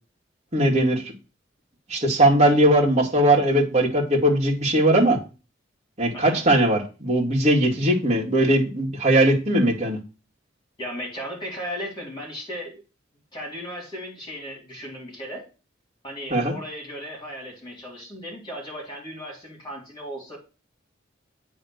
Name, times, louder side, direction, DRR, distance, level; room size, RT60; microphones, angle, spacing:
voice 1, 0.5-1.1 1.9-5.2 6.0-10.0 16.3-16.5, right 1 dB, 35° right, -3 dB, 2.3 m, -19 dB
voice 2, 6.1-6.4 10.8-12.8 13.3-15.4 16.0-20.4, equal, 25° left, -2 dB, 4.0 m, -36 dB
8.9 x 3.6 x 6.6 m, 0.32 s
head